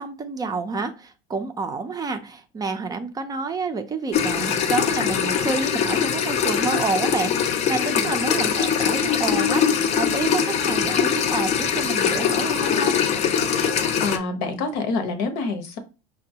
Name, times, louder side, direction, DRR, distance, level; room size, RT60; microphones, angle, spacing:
voice 1, 0.0-13.0, right 4 dB, 20° right, 6 dB, 0.5 m, -29 dB
sound 1, 4.1-14.2, left 7 dB, 35° left, 0.5 m, -22 dB
voice 2, 14.0-15.8, left 3 dB, 65° left, 7 dB, 0.9 m, -27 dB
5.1 x 2.2 x 2.8 m, 0.32 s
supercardioid pair, 120°, 18 cm